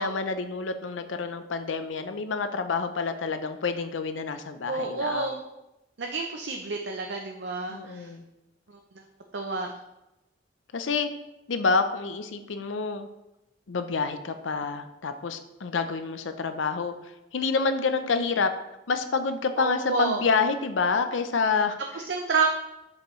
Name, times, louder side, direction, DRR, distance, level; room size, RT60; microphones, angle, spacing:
voice 1, 0.0-5.4 7.7-8.2 10.7-11.1 11.5-13.1 13.7-16.9 17.3-18.5 18.9-21.8, left 4 dB, 85° left, 9 dB, 0.6 m, -28 dB
voice 2, 4.7-5.4 6.0-8.1 8.7-8.8 9.3-9.7 19.6-20.2 21.9-22.5, right 4 dB, 65° right, 3 dB, 0.6 m, -29 dB
8.1 x 5.4 x 3.1 m, 0.93 s
head